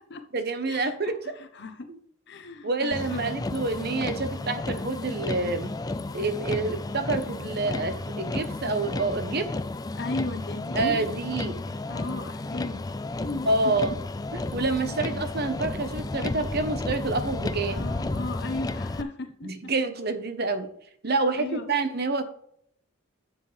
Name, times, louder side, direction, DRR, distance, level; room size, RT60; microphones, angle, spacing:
voice 1, 0.3-1.3 1.9-2.0 2.6-5.7 6.1-9.5 10.7-11.6 13.5-13.9 14.5-17.9 19.4-20.7 21.0-22.2, right 3 dB, 50° right, 9 dB, 1.1 m, -28 dB
voice 2, 1.3-1.9 2.3-3.4 10.0-11.0 11.9-12.8 13.2-13.7 15.0-15.1 17.7-19.7 21.4-21.7, left 2 dB, 55° left, 7 dB, 1.1 m, -36 dB
Motor vehicle (road), 2.9-19.0, left 2 dB, 20° left, 0.4 m, -32 dB
10.5 x 7.4 x 3.4 m, 0.67 s
head